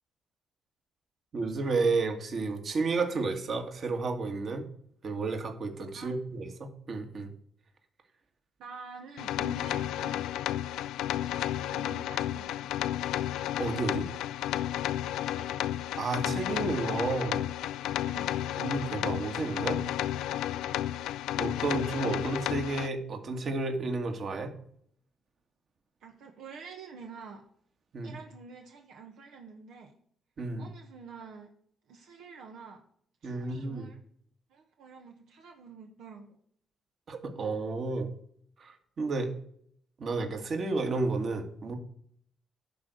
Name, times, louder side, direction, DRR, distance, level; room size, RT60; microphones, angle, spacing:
voice 1, 1.3-4.7 5.0-7.3 13.6-14.1 15.9-17.5 18.6-19.8 21.3-24.5 27.9-28.2 30.4-30.7 33.2-33.9 37.1-38.1 38.6-39.3 40.0-41.7, right 3 dB, 50° right, 5 dB, 1.8 m, -31 dB
voice 2, 8.6-10.3 11.2-12.7 15.3-15.5 18.0-18.3 26.0-27.5 28.0-30.0 30.6-31.5 31.9-32.8 33.2-34.0 34.5-36.4, right 5 dB, 80° right, 3 dB, 1.1 m, -48 dB
sound 1, 9.2-22.9, left 12 dB, 90° left, 0.3 m, -32 dB
11.5 x 4.0 x 7.6 m, 0.64 s
cardioid pair, 90°, 0 cm